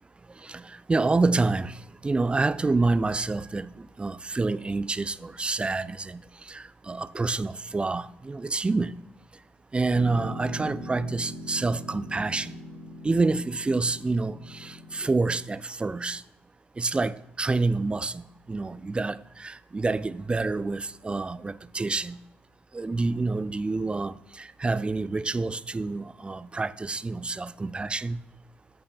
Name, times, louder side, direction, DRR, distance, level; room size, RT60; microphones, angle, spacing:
voice 1, 0.4-8.9 9.7-12.5 13.0-16.2 16.8-18.2 18.5-22.2 22.7-28.2, right 3 dB, 20° right, 0.4 m, -28 dB
Piano, 9.9-15.0, equal, 85° left, 1.5 m, -41 dB
14.5 x 5.5 x 2.2 m
hypercardioid pair, 50°, 5 cm